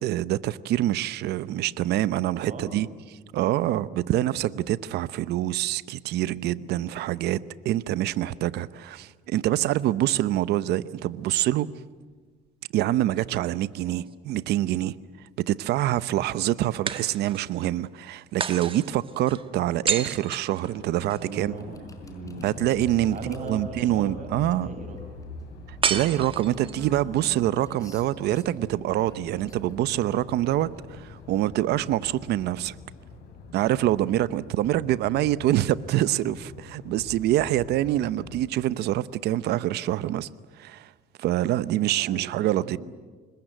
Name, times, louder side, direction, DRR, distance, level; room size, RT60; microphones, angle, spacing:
voice 1, 0.0-2.9 3.3-7.4 7.6-11.7 12.7-14.9 15.5-21.5 22.4-24.7 25.9-32.8 33.5-40.3 40.6-40.9 41.2-42.8, right 13 dB, 75° right, 0.9 m, -25 dB
voice 2, 2.4-2.8 21.2-22.4 23.1-25.2 42.0-42.8, right 3 dB, 50° right, 5.4 m, -38 dB
sound 1, 13.8-14.8 16.9-17.6 18.4-21.2 25.8-26.9, right 6 dB, 30° right, 1.6 m, -31 dB
sulivan's gultch, 20.7-38.4, left 4 dB, 75° left, 7.5 m, -44 dB
sound 2, 21.5-32.3, left 2 dB, 20° left, 4.8 m, -51 dB
26.0 x 21.5 x 9.2 m
cardioid pair, 110°, 17 cm